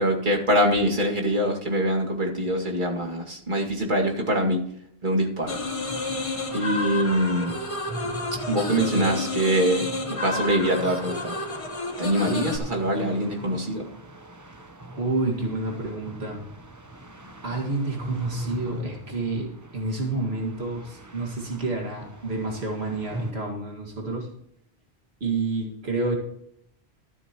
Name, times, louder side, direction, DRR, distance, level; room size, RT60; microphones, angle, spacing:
voice 1, 0.0-4.6 5.0-5.6 6.5-7.6 8.5-11.4 12.0-13.9, right 1 dB, 50° right, 0 dB, 2.3 m, -24 dB
sound 1, 5.4-23.3, right 1 dB, 20° right, 0.8 m, -41 dB
sound 2, 5.5-12.6, left 2 dB, 30° left, 1.3 m, -31 dB
voice 2, 8.7-9.2 15.0-16.4 17.4-24.3 25.2-26.2, right 3 dB, 80° right, 0 dB, 2.3 m, -29 dB
13.5 x 12.0 x 3.0 m, 0.71 s
omnidirectional pair, 1.0 m